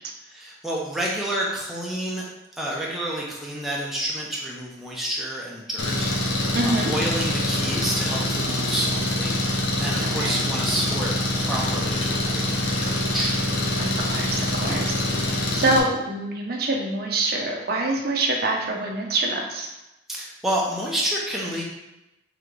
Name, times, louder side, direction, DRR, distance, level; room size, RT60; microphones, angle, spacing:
voice 1, 0.3-2.2 2.6-13.3 20.1-21.6, right 1 dB, ahead, -4 dB, 0.5 m, -29 dB
Engine, 5.8-15.8, left 1 dB, 65° left, 0.6 m, -25 dB
voice 2, 6.5-6.9 10.0-10.4 13.8-15.0 15.5-19.7, right 2 dB, 50° right, 0 dB, 0.6 m, -25 dB
sound 1, 6.6-12.4, equal, 25° left, 0.9 m, -46 dB
3.3 x 3.0 x 3.7 m, 0.97 s
head